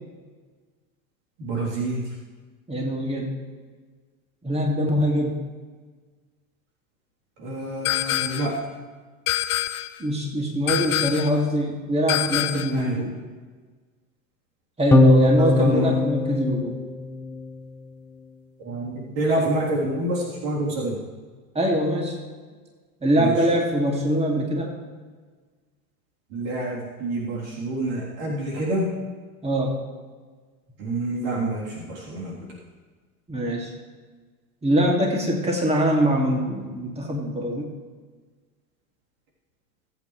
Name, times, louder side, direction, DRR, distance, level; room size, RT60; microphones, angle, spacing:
voice 1, 1.4-2.1 7.4-8.6 12.7-13.1 15.4-16.0 18.6-21.0 23.1-23.4 26.3-28.9 30.8-32.5, right 1 dB, 65° right, -5 dB, 3.6 m, -27 dB
voice 2, 2.7-3.3 4.4-5.4 10.0-13.1 14.8-16.8 21.5-22.2 23.0-24.7 29.4-29.7 33.3-33.7 34.6-37.7, equal, 15° right, 0 dB, 2.4 m, -23 dB
sound 1, 7.8-8.6 9.3-10.0 10.7-11.4 12.1-12.8, left 14 dB, 75° left, 0.8 m, -26 dB
sound 2, 14.9-17.5, left 2 dB, 5° left, 1.0 m, -20 dB
20.0 x 8.4 x 3.3 m, 1.4 s
hypercardioid pair, 100°, 43 cm